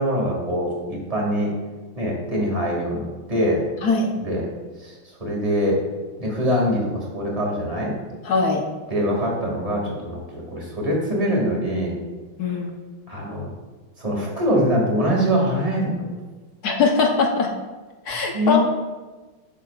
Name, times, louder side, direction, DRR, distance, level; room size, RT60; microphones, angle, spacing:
voice 1, 0.0-1.5 2.0-3.6 4.2-4.4 4.8-4.9 5.2-5.8 6.2-8.0 8.9-12.0 13.1-13.5 14.0-16.1 18.3-18.6, equal, 15° right, -3 dB, 2.2 m, -23 dB
voice 2, 3.8-4.1 8.2-8.6 12.4-12.7 16.6-17.5 18.1-18.6, left 4 dB, 55° left, 2 dB, 1.2 m, -21 dB
17.5 x 6.5 x 2.4 m, 1.3 s
omnidirectional pair, 2.4 m